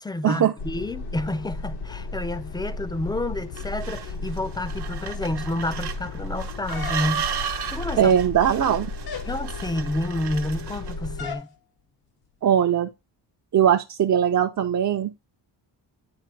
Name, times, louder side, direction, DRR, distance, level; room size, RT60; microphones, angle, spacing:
voice 1, 0.0-8.1 9.3-11.5, left 1 dB, 10° left, 0.4 m, -30 dB
sound 1, 0.6-11.4, left 3 dB, 75° left, 1.3 m, -34 dB
sound 2, 3.6-11.1, right 8 dB, 70° right, 1.0 m, -34 dB
sound 3, 6.7-7.4 8.2-8.7 9.0-9.4 11.2-11.5, left 6 dB, 60° left, 1.0 m, -37 dB
voice 2, 8.0-8.9 12.4-12.9 13.5-15.1, right 9 dB, 45° right, 0.6 m, -20 dB
9.7 x 3.3 x 4.6 m
wide cardioid pair, 130°, 42 cm